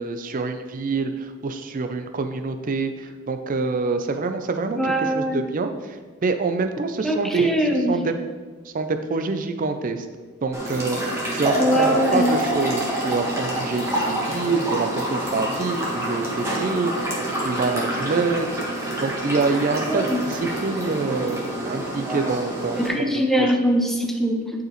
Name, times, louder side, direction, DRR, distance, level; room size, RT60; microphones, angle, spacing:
voice 1, 0.0-5.7 6.2-7.6 7.9-8.1 8.7-10.0 10.4-11.0 11.3-16.9 17.4-18.5 19.0-23.1 23.4-23.5, right 4 dB, 40° right, 8 dB, 0.4 m, -26 dB
voice 2, 4.8-5.4 7.0-8.0 11.6-12.3 19.9-20.2 22.8-24.5, equal, ahead, 2 dB, 0.6 m, -22 dB
sound 1, 10.5-22.9, right 1 dB, 15° right, 1.4 m, -27 dB
9.4 x 4.8 x 3.0 m, 1.4 s
head